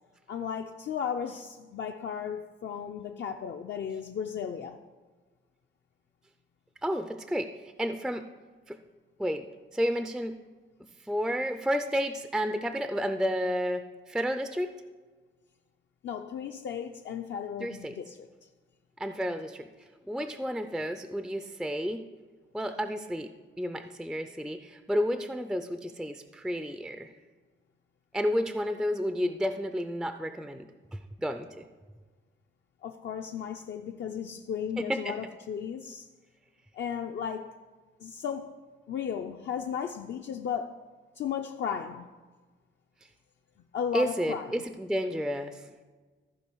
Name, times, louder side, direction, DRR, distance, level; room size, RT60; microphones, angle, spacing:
voice 1, 0.3-4.8 16.0-18.3 32.8-36.1 36.7-37.5 38.0-38.5 38.9-40.8 41.2-42.1 43.7-44.6, left 7 dB, 60° left, 4 dB, 0.5 m, -35 dB
voice 2, 6.8-7.5 7.8-8.3 8.7-8.8 9.2-9.5 9.7-10.4 11.1-14.7 17.6-18.0 19.0-19.6 20.1-22.0 22.5-23.3 23.6-27.1 28.1-30.7 30.9-31.6 34.8-35.1 43.9-45.7, equal, ahead, 8 dB, 0.3 m, -31 dB
14.5 x 4.8 x 4.6 m, 1.4 s
wide cardioid pair, 140°, 21 cm